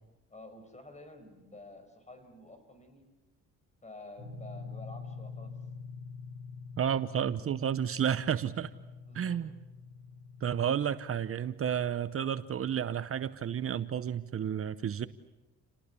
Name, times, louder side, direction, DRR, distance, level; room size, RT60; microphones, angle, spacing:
voice 1, 0.3-3.1 3.8-5.6 9.1-9.4, left 2 dB, 25° left, 8 dB, 5.7 m, -50 dB
sound 1, 4.2-13.9, left 4 dB, 80° left, 6.5 m, -47 dB
voice 2, 6.8-8.7 9.1-9.5 10.4-15.1, right 9 dB, 45° right, 13 dB, 0.9 m, -31 dB
29.5 x 19.0 x 8.4 m, 1.1 s
cardioid pair, 90°, 30 cm